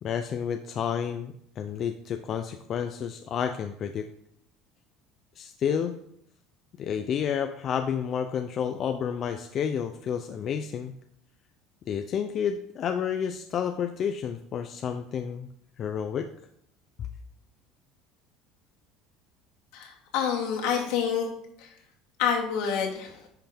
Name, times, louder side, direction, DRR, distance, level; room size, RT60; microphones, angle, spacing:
voice 1, 0.0-4.1 5.4-6.0 6.8-10.9 11.9-15.5 15.8-16.3, left 8 dB, 40° left, 7 dB, 0.5 m, -30 dB
voice 2, 19.7-21.3 21.6-21.7 22.2-23.2, left 7 dB, 75° left, -1 dB, 2.3 m, -27 dB
10.0 x 5.7 x 3.5 m, 0.71 s
cardioid pair, 140°, 0 cm